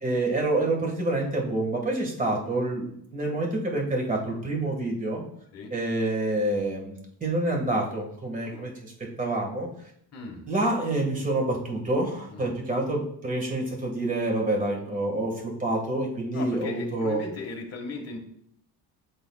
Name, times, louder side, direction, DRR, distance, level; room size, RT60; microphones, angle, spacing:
voice 1, 0.0-5.2 5.7-8.9 9.2-9.7 10.5-17.2, right 2 dB, 20° right, 0 dB, 1.6 m, -27 dB
voice 2, 8.4-8.8 10.1-10.5 12.3-12.5 16.3-18.2, left 3 dB, 40° left, 1 dB, 1.5 m, -37 dB
11.5 x 3.9 x 2.3 m, 0.70 s
cardioid pair, 155°, 38 cm